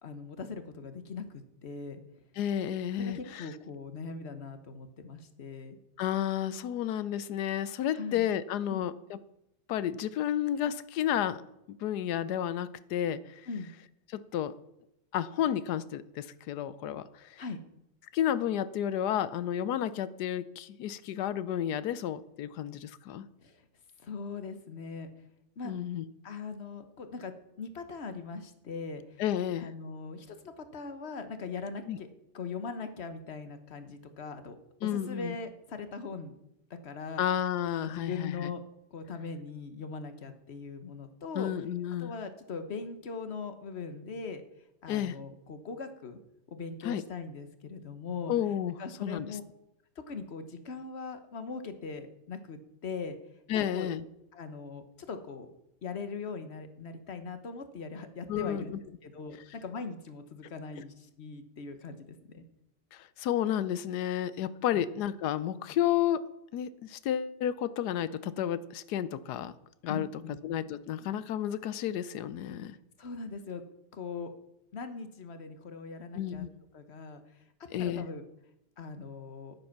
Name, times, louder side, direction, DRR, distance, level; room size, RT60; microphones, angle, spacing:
voice 1, 0.0-2.0 3.0-5.8 7.9-8.3 8.7-8.9 13.5-13.7 17.4-17.6 23.4-23.6 24.0-25.1 25.6-25.7 26.2-27.3 27.6-29.2 29.6-32.1 32.3-34.6 34.8-36.3 36.8-37.2 37.8-38.6 38.9-41.5 42.0-44.4 44.8-46.2 46.5-49.4 50.0-53.2 53.5-53.9 54.3-55.5 55.8-58.7 59.0-62.4 64.7-64.8 69.9-70.4 73.0-73.6 73.9-74.3 74.7-76.5 76.7-77.4 77.8-78.2 78.8-79.5, left 4 dB, 40° left, 9 dB, 1.2 m, -40 dB
voice 2, 2.4-3.5 6.0-9.2 9.7-11.4 11.8-13.4 14.1-14.5 15.1-17.1 18.1-23.3 25.6-26.0 29.2-29.7 31.9-32.0 34.8-35.3 37.2-38.5 41.3-42.1 44.9-45.1 46.8-47.0 48.3-48.7 49.0-49.3 53.5-54.0 58.3-58.8 62.9-66.2 66.5-69.5 69.8-70.1 70.4-72.8 76.2-76.5 77.7-78.1, left 10 dB, 70° left, 16 dB, 1.1 m, -31 dB
9.8 x 9.5 x 5.9 m, 0.83 s
omnidirectional pair, 1.9 m